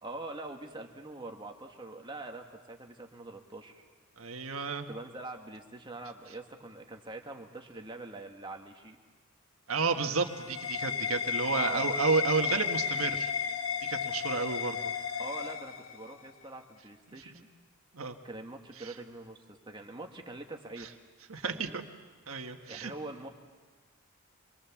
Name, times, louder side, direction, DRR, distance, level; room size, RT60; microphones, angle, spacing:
voice 1, 0.0-3.8 4.9-9.0 11.5-11.9 15.2-17.5 18.2-20.9 21.4-21.8 22.7-23.3, right 2 dB, 20° right, 3 dB, 1.7 m, -44 dB
voice 2, 4.2-4.9 9.7-13.3 13.8-14.9 17.9-18.2 18.8-18.9 20.8-20.9 21.3-21.7 22.3-22.9, right 4 dB, 75° right, 5 dB, 1.6 m, -31 dB
sound 1, 9.8-16.3, left 6 dB, 70° left, 1.3 m, -33 dB
26.0 x 23.5 x 7.3 m, 1.4 s
head